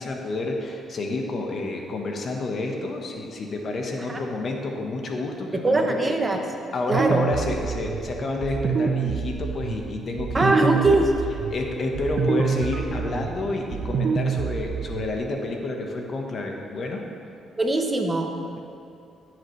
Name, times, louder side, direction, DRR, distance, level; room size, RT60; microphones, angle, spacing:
voice 1, 0.0-5.8 6.7-11.0 11.5-17.0, left 2 dB, 50° left, 1 dB, 1.3 m, -29 dB
voice 2, 5.6-6.4 6.9-7.2 10.3-11.1 17.6-18.6, right 2 dB, 25° right, 3 dB, 1.1 m, -22 dB
sound 1, 6.9-15.2, right 6 dB, 60° right, 0.6 m, -27 dB
16.0 x 7.5 x 3.3 m, 2.6 s
cardioid pair, 90°, 0 cm